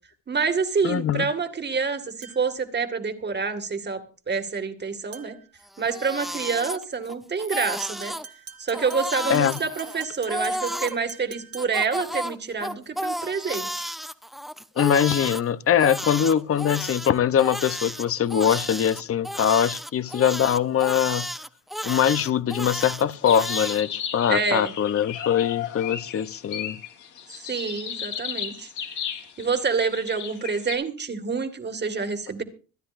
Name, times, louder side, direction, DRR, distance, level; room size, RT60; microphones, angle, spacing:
voice 1, 0.3-5.4 5.8-8.2 8.6-13.8 24.3-24.7 27.3-28.7 29.4-32.4, right 5 dB, 35° right, 2.1 m, -27 dB
voice 2, 0.8-1.3 9.3-9.6 14.8-21.3 21.8-26.8, left 9 dB, 50° left, 0.8 m, -22 dB
sound 1, 2.2-2.7 5.1-5.5 8.0-12.0, right 6 dB, 50° right, 2.2 m, -45 dB
Crying sobbing, 5.7-7.1 7.4-8.2 8.7-11.0 11.6-15.4 15.8-23.8, equal, ahead, 0.9 m, -32 dB
sound 2, 23.0-30.8, left 9 dB, 75° left, 3.5 m, -35 dB
25.5 x 10.0 x 2.6 m
cardioid pair, 90°, 30 cm